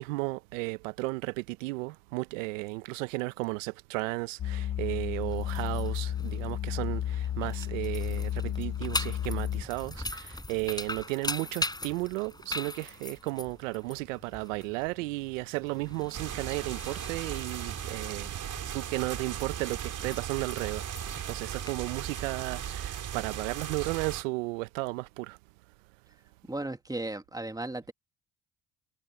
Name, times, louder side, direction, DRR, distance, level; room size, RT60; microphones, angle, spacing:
voice 1, 0.0-18.4 18.6-20.9 21.3-25.4, right 24 dB, 80° right, 1.2 m, -34 dB
sound 1, 4.4-9.6, left 10 dB, 45° left, 1.1 m, -32 dB
sound 2, 5.1-22.7, left 2 dB, 10° left, 5.1 m, -41 dB
sound 3, 16.1-24.2, right 10 dB, 55° right, 4.6 m, -37 dB
voice 2, 26.5-27.9, right 2 dB, 10° right, 2.1 m, -35 dB
hypercardioid pair, 55°, 38 cm